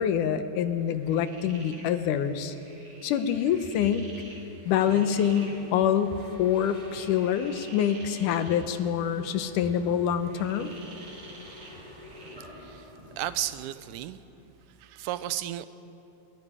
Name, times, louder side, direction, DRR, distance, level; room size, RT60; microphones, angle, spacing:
voice 1, 0.0-2.5 3.0-4.0 4.7-10.7, left 9 dB, 85° left, 10 dB, 2.5 m, -26 dB
sound 1, 0.7-12.4, right 2 dB, 65° right, 4.5 m, -50 dB
Mechanisms, 4.7-13.6, equal, 15° right, 3.0 m, -46 dB
voice 2, 12.6-14.2 14.8-15.7, right 13 dB, 85° right, 13 dB, 2.2 m, -34 dB
27.5 x 21.0 x 5.0 m, 2.9 s
omnidirectional pair, 3.6 m